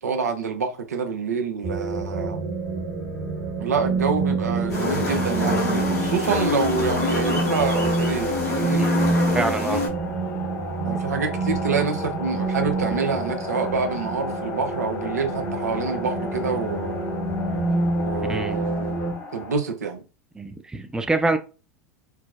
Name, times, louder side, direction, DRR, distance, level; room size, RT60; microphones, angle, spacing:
voice 1, 0.0-2.4 3.6-8.9 10.8-17.0 18.0-19.0 19.3-20.0, right 5 dB, 85° right, 0.6 m, -27 dB
sound 1, 1.6-19.1, right 2 dB, 55° right, 1.1 m, -27 dB
sound 2, 4.6-19.6, left 3 dB, 50° left, 1.0 m, -37 dB
sound 3, 4.7-9.9, left 4 dB, 85° left, 1.4 m, -27 dB
voice 2, 9.3-9.8 18.3-18.6 20.4-21.4, right 3 dB, 10° right, 0.5 m, -25 dB
4.5 x 2.0 x 2.3 m
hypercardioid pair, 90°, 9 cm